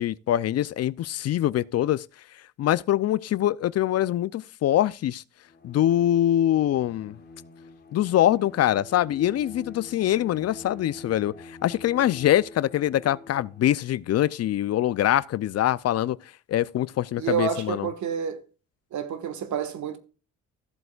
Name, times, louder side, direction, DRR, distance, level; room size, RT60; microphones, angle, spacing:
voice 1, 0.0-2.0 2.6-5.2 5.6-7.2 7.9-16.2 16.5-17.9, left 12 dB, 55° left, 0.5 m, -24 dB
Bowed string instrument, 5.4-13.9, left 3 dB, 35° left, 1.7 m, -46 dB
voice 2, 17.2-18.4 18.9-20.0, right 8 dB, 70° right, 1.6 m, -29 dB
14.5 x 7.8 x 2.3 m
cardioid pair, 90°, 30 cm